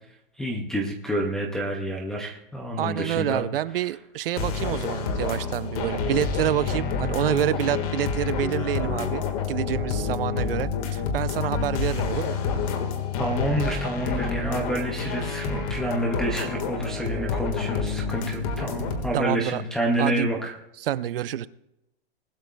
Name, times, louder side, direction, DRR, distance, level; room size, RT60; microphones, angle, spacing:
voice 1, 0.4-3.4 13.2-20.5, right 1 dB, ahead, -3 dB, 0.3 m, -28 dB
voice 2, 2.8-9.2 9.5-12.4 19.1-19.6 20.0-20.3 20.8-21.5, right 12 dB, 65° right, 16 dB, 0.7 m, -27 dB
sound 1, 4.4-19.1, left 4 dB, 35° left, 1.6 m, -29 dB
sound 2, 6.1-13.6, left 15 dB, 80° left, 2.8 m, -33 dB
20.0 x 12.5 x 2.3 m, 0.86 s
hypercardioid pair, 160°, 31 cm